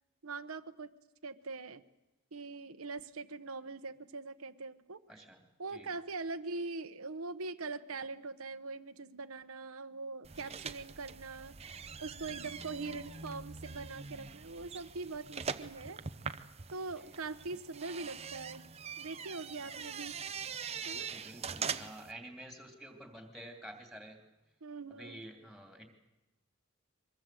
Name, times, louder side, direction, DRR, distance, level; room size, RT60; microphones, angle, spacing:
voice 1, 0.2-0.9 1.2-1.8 2.3-5.2 5.6-16.0 16.7-18.7 19.0-20.1 20.8-21.1 24.6-25.2, right 3 dB, 80° right, 8 dB, 1.0 m, -42 dB
voice 2, 5.1-5.4 5.7-5.9 10.4-10.7 17.0-17.1 20.9-24.2 25.0-25.9, right 1 dB, ahead, 4 dB, 2.9 m, -50 dB
sound 1, 10.2-22.1, right 6 dB, 30° right, 0.7 m, -43 dB
23.0 x 22.0 x 7.6 m, 0.99 s
head